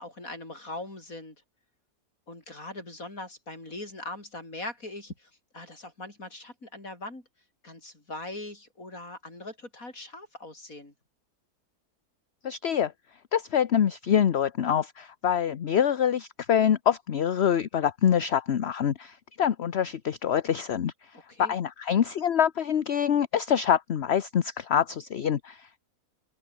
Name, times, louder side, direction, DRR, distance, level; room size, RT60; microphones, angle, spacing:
voice 1, 0.0-1.4 2.3-7.3 7.6-10.9 21.1-21.6, left 2 dB, 65° left, 6.9 m, -41 dB
voice 2, 12.4-12.9 13.3-21.1 21.4-25.8, left 9 dB, 50° left, 1.0 m, -25 dB
omnidirectional pair, 1.6 m